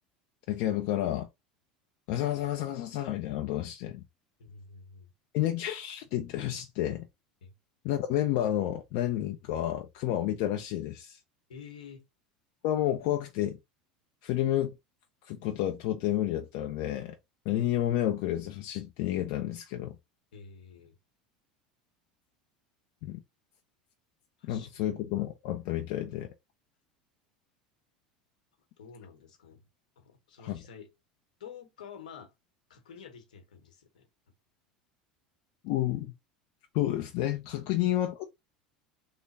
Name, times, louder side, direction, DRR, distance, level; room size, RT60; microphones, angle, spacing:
voice 1, 0.5-1.3 2.1-4.0 5.3-7.1 7.8-11.2 12.6-13.6 14.2-14.7 15.2-17.2 17.5-20.0 23.0-23.2 24.5-26.3 30.4-30.6 35.6-36.1 36.7-38.2, left 13 dB, 65° left, 0.6 m, -30 dB
voice 2, 4.4-5.1 7.4-7.5 11.5-12.1 20.3-20.9 24.4-24.7 28.8-29.6 30.0-30.9 31.4-32.3 32.7-34.1, left 6 dB, 90° left, 1.0 m, -49 dB
3.3 x 2.1 x 4.1 m
hypercardioid pair, 95°, 4 cm